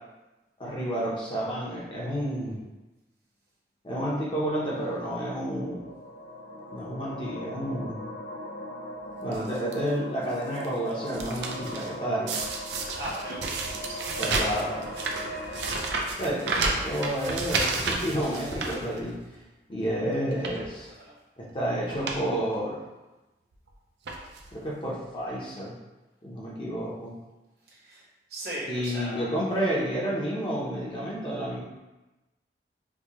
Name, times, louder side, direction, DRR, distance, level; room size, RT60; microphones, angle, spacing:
voice 1, 0.6-2.6 3.8-5.8 6.7-8.0 9.2-12.3 14.2-14.9 16.2-19.4 19.7-20.9 21.4-22.8 24.5-25.8 26.2-27.1 28.7-31.6, equal, 30° left, -5 dB, 0.6 m, -30 dB
sound 1, 5.2-15.9, equal, 75° left, 0.4 m, -39 dB
sound 2, 9.3-9.7 10.3-10.7 10.9-11.9 12.3-19.4 19.8-19.9 20.3-20.7 21.5-21.6 21.9-22.2 22.5-22.6 23.5-23.7 24.0-24.5 25.3-25.4 25.6-25.7, right 3 dB, 80° right, 0.5 m, -31 dB
voice 2, 12.9-13.5 13.9-14.1 20.9-21.1 27.6-29.4, right 1 dB, 65° right, -6 dB, 1.2 m, -38 dB
4.5 x 2.2 x 2.9 m, 1.1 s
head